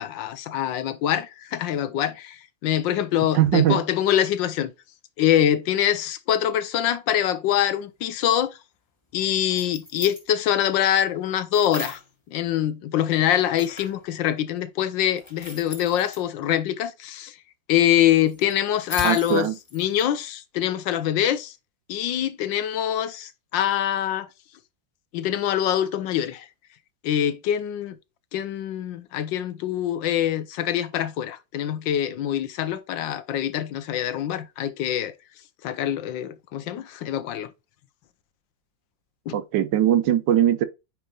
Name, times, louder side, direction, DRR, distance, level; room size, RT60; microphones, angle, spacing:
voice 1, 0.0-4.7 5.2-8.6 9.1-12.0 12.3-17.3 17.7-21.5 21.9-24.3 25.1-26.5 27.0-28.0 28.3-35.1 35.6-37.5 39.3-39.4, left 11 dB, 80° left, 1.4 m, -24 dB
voice 2, 3.3-3.8 19.0-19.6 39.3-40.6, right 11 dB, 75° right, 1.5 m, -20 dB
sound 1, 9.4-10.2 11.5-12.1 13.6-14.1 15.2-16.2 18.3-20.1, left 2 dB, 15° left, 1.6 m, -38 dB
8.9 x 4.7 x 2.4 m
omnidirectional pair, 2.0 m